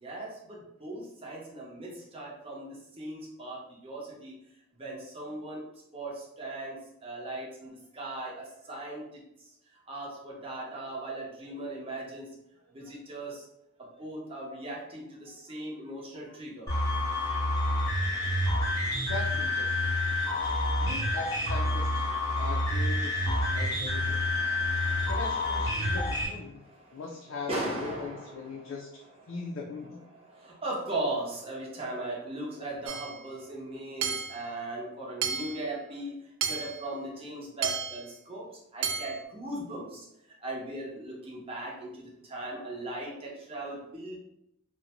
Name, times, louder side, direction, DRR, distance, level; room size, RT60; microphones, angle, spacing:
voice 1, 0.0-4.3 4.7-5.7 5.9-9.2 9.9-12.3 12.7-13.5 13.8-16.7 22.1-22.5 23.2-25.1 25.7-26.0 26.5-27.0 27.5-28.7 29.3-29.4 30.2-36.2 36.5-40.1 40.4-44.2, right 1 dB, 30° right, -3 dB, 0.7 m, -38 dB
sound 1, 16.7-26.3, left 1 dB, 20° left, 0.8 m, -28 dB
voice 2, 19.1-19.9 20.7-22.1 22.4-24.2 25.1-26.6 26.9-30.0, left 4 dB, 85° left, -1 dB, 0.4 m, -40 dB
Hammer / Chink clink, 32.9-33.2 34.0-34.4 35.2-35.6 36.4-36.8 37.6-38.0 38.8-39.2, right 7 dB, 85° right, 0.3 m, -32 dB
2.5 x 2.1 x 2.8 m, 0.81 s
head